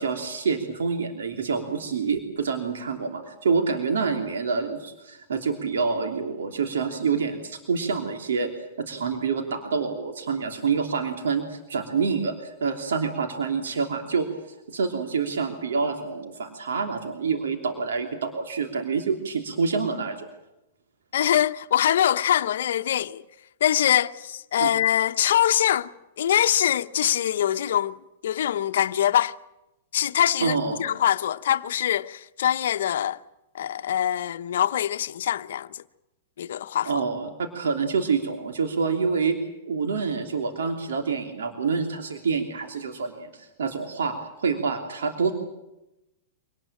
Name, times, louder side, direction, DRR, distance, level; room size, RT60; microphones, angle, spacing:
voice 1, 0.0-8.5 8.8-20.3 24.6-24.7 30.4-30.8 36.8-39.4 39.7-45.3, right 5 dB, 85° right, 3.1 m, -27 dB
voice 2, 21.1-23.2 23.6-25.9 26.2-28.0 28.2-29.3 29.9-33.2 33.5-35.8 36.4-36.9, left 10 dB, 75° left, 0.9 m, -23 dB
25.5 x 19.0 x 8.9 m
hypercardioid pair, 120°, 0 cm